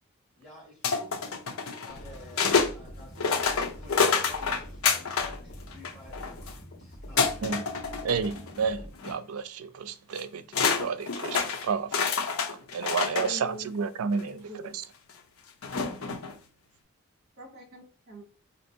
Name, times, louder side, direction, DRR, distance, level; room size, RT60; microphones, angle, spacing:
voice 1, 0.4-1.2 1.8-7.5 12.7-13.2, equal, 5° left, 1.6 m, -51 dB
sound 1, 0.8-2.7 3.2-5.4 5.7-6.5 7.2-8.6 8.9-9.1 10.2-10.3 10.5-13.3 14.1-14.2 15.6-16.3, left 5 dB, 75° left, 0.7 m, -27 dB
sound 2, 1.9-8.9, equal, 50° left, 1.6 m, -45 dB
voice 2, 8.0-12.1 12.7-14.8, right 5 dB, 80° right, 0.4 m, -31 dB
voice 3, 13.2-13.7 14.2-14.7 17.4-18.2, left 1 dB, 45° right, 1.2 m, -43 dB
4.3 x 2.8 x 2.7 m
head